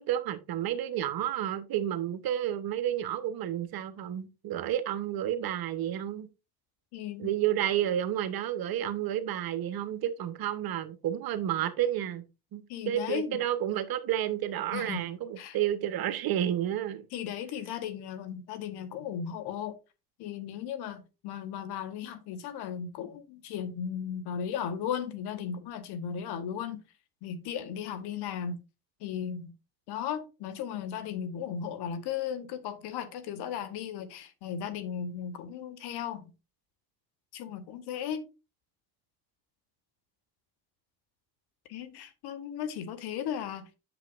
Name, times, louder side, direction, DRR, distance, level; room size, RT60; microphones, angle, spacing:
voice 1, 0.0-6.3 7.2-12.2 12.5-17.1, right 11 dB, 55° right, 1.1 m, -31 dB
voice 2, 6.9-7.3 12.7-13.4 14.7-15.0 15.4-15.6 17.1-19.8 20.2-26.8 27.2-28.6 29.0-29.5 29.9-36.3 37.3-38.3 41.7-43.7, left 8 dB, 60° left, 1.2 m, -36 dB
7.8 x 6.9 x 2.5 m
hypercardioid pair, 55°, 44 cm